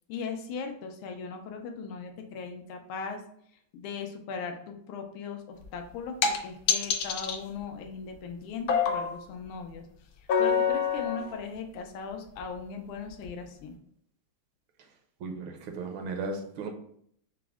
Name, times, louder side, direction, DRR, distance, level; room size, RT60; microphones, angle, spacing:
voice 1, 0.1-3.2 3.7-9.8 10.2-13.7, left 5 dB, 90° left, 4 dB, 1.5 m, -38 dB
sound 1, 5.6-5.7 6.2-6.4 6.7-7.4 8.7-9.2 10.3-11.3 12.4-12.5 13.2-13.3, left 6 dB, 70° left, 1.3 m, -26 dB
voice 2, 15.2-16.7, right 3 dB, 80° right, 3 dB, 1.5 m, -35 dB
5.7 x 2.0 x 3.4 m, 0.67 s
omnidirectional pair, 2.3 m